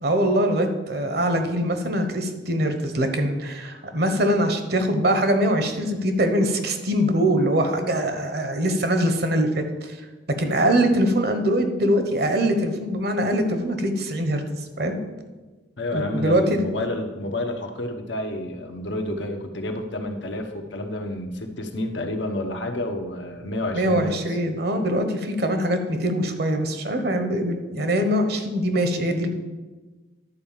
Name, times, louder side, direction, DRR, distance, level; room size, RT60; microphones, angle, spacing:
voice 1, 0.0-10.0 10.4-14.4 14.8-15.0 15.9-16.7 23.7-29.3, right 1 dB, 55° right, 7 dB, 1.1 m, -23 dB
voice 2, 15.8-24.1, left 1 dB, 70° left, 4 dB, 1.1 m, -29 dB
11.0 x 4.7 x 7.2 m, 1.2 s
head